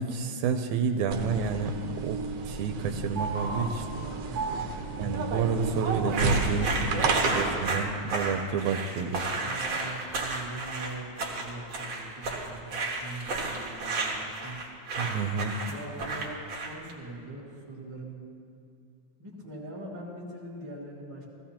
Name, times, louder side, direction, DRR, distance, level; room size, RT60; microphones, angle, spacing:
voice 1, 0.0-3.9 5.0-6.8 7.3-9.3 15.0-15.6, right 5 dB, 90° right, 6 dB, 2.0 m, -30 dB
sound 1, 1.1-7.7, right 3 dB, 65° right, 1.8 m, -31 dB
voice 2, 4.2-4.6 7.1-7.5 9.4-14.6 15.6-18.2 19.2-21.2, right 2 dB, 10° right, -7 dB, 1.2 m, -42 dB
sound 2, 6.1-16.9, right 3 dB, 50° right, 1.8 m, -32 dB
16.5 x 15.0 x 2.9 m, 2.3 s
omnidirectional pair, 3.4 m